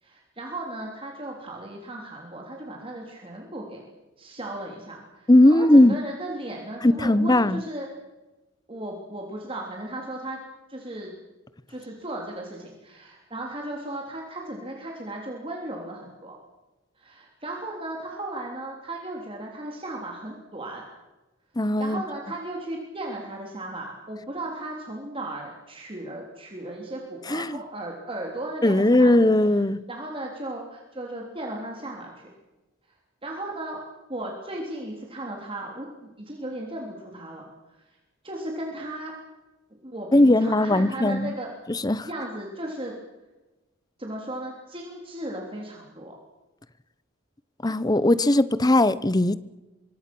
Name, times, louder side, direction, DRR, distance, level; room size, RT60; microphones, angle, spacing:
voice 1, 0.0-3.8 4.2-7.9 8.7-10.4 10.7-11.1 11.7-16.4 17.0-20.9 21.8-29.3 29.9-32.3 33.2-33.8 34.1-37.5 37.8-38.0 38.2-39.1 39.8-41.5 42.1-42.9 44.0-46.1, right 1 dB, 25° right, 0 dB, 3.4 m, -36 dB
voice 2, 5.3-6.0 6.8-7.6 21.6-22.0 27.3-27.6 28.6-29.8 40.1-41.3 41.7-42.1 47.6-49.4, left 1 dB, 20° left, 16 dB, 0.8 m, -19 dB
26.0 x 24.0 x 6.2 m, 1.1 s
head